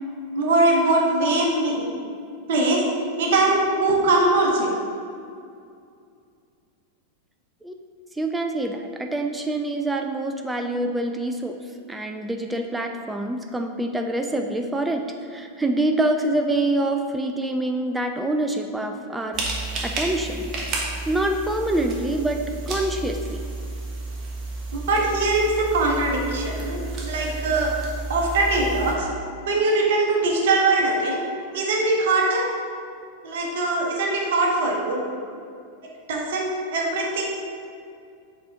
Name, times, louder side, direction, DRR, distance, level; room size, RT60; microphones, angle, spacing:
voice 1, 0.3-1.8 2.5-2.8 3.2-4.7 24.7-27.7 28.1-29.1 29.5-31.2 31.5-32.5 33.2-35.0 36.1-37.2, right 2 dB, 55° right, -1 dB, 1.0 m, -21 dB
voice 2, 8.1-11.6 11.9-20.5 21.1-23.4 35.3-35.4, right 1 dB, 10° right, 4 dB, 0.4 m, -26 dB
sound 1, 19.3-29.0, right 2 dB, 30° right, 1.2 m, -32 dB
7.4 x 4.2 x 3.5 m, 2.3 s
figure-of-eight pair, 90°, 0 cm